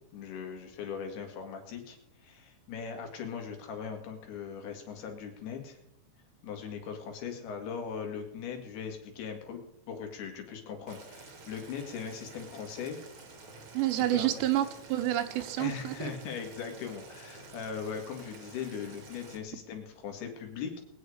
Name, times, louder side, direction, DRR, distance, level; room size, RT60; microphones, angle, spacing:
voice 1, 0.1-5.8 6.4-13.0 14.1-14.3 15.6-20.8, left 6 dB, 65° left, 4 dB, 3.8 m, -39 dB
Boiling, 10.9-19.4, right 3 dB, 50° right, 1.5 m, -50 dB
voice 2, 13.7-16.1, right 14 dB, 80° right, 8 dB, 2.9 m, -29 dB
21.5 x 9.4 x 5.0 m, 0.75 s
omnidirectional pair, 5.2 m